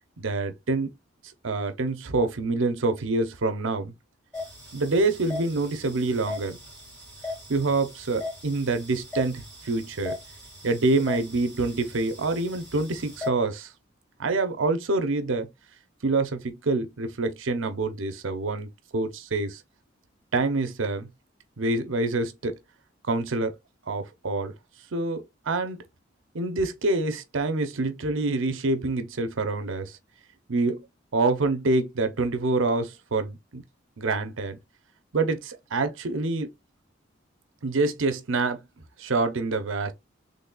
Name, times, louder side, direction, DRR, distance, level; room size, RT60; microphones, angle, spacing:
voice 1, 0.2-0.9 1.4-3.9 4.7-6.6 7.5-10.2 10.6-13.7 14.2-15.5 16.0-18.7 18.9-19.6 20.3-21.1 21.6-22.6 23.1-23.5 23.9-24.5 24.9-25.8 26.3-30.0 30.5-30.8 31.1-33.6 34.0-34.6 35.1-36.5 37.6-38.6 39.0-39.9, right 3 dB, 85° right, 0.7 m, -26 dB
sound 1, 4.3-13.3, left 3 dB, 5° left, 2.5 m, -39 dB
4.0 x 3.3 x 2.3 m
head